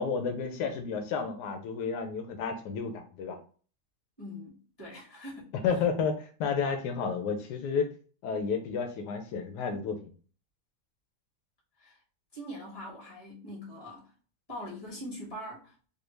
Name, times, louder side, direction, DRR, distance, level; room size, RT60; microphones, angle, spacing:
voice 1, 0.0-3.4 5.6-7.9 8.2-10.0, left 5 dB, 85° left, 1.2 m, -31 dB
voice 2, 4.2-5.5 11.8-12.0 12.3-14.1 14.5-15.9, equal, 15° left, 1.4 m, -42 dB
3.4 x 2.2 x 3.1 m
omnidirectional pair, 1.7 m